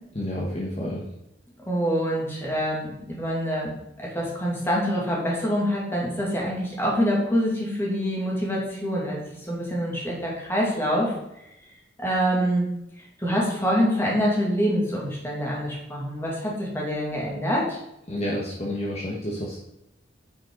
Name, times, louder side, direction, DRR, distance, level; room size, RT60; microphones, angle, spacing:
voice 1, 0.1-1.1 18.1-19.6, left 1 dB, 35° left, -4 dB, 1.5 m, -30 dB
voice 2, 1.7-11.1 12.0-12.7 13.0-17.8, equal, 15° left, -4 dB, 2.5 m, -26 dB
9.1 x 6.2 x 3.9 m, 0.85 s
head